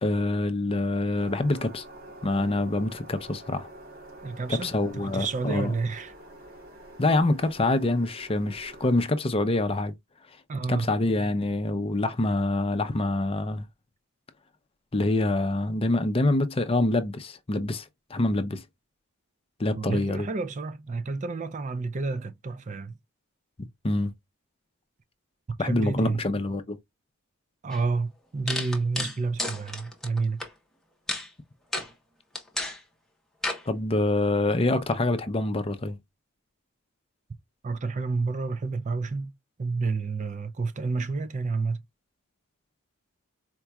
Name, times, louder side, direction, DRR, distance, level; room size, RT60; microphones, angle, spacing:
voice 1, 0.0-1.8 2.2-3.7 4.5-5.7 7.0-9.9 10.7-13.7 14.9-18.6 19.6-20.3 23.8-24.1 25.6-26.8 33.7-36.0, left 2 dB, 25° left, 0.6 m, -26 dB
sound 1, 1.2-9.1, right 1 dB, 80° right, 2.5 m, -47 dB
voice 2, 4.2-6.1 10.5-10.9 19.7-23.0 25.5-26.2 27.6-30.4 37.6-39.3 39.6-41.8, right 4 dB, 35° right, 0.4 m, -30 dB
sound 2, 27.7-27.8 28.5-30.5 31.1-31.3 31.7-31.9 32.4-32.8 33.4-33.6, left 1 dB, ahead, 1.0 m, -31 dB
4.4 x 2.9 x 2.3 m
head